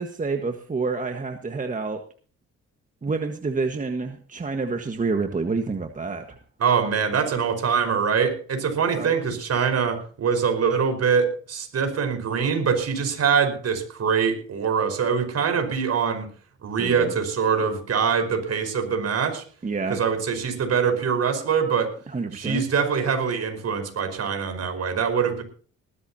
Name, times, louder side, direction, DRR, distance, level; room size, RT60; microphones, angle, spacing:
voice 1, 0.0-2.0 3.0-6.2 9.0-9.1 16.8-17.1 19.6-20.0 22.1-22.6, right 4 dB, 25° right, 5 dB, 1.6 m, -28 dB
voice 2, 6.6-16.3 16.6-19.4 19.9-21.9 22.3-25.4, right 6 dB, 55° right, 7 dB, 5.0 m, -23 dB
19.5 x 14.0 x 2.9 m, 0.41 s
cardioid pair, 90°, 30 cm